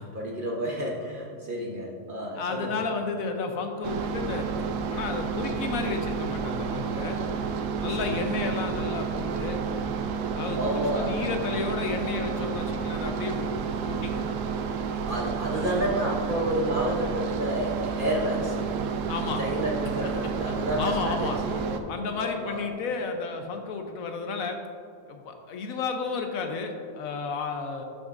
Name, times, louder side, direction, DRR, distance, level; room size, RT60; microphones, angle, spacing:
voice 1, 0.1-2.8 7.9-8.4 10.5-11.2 15.1-18.9 19.4-21.8 22.2-22.7, equal, 45° right, -2 dB, 0.8 m, -30 dB
voice 2, 2.4-4.5 4.9-7.2 7.8-9.6 10.3-10.6 11.0-14.2 19.1-19.4 20.5-21.4 21.9-24.6 25.1-27.8, left 4 dB, 70° left, 4 dB, 1.0 m, -32 dB
sound 1, 3.8-21.8, right 6 dB, 85° right, 1.2 m, -30 dB
11.5 x 6.4 x 2.5 m, 2.4 s
omnidirectional pair, 1.7 m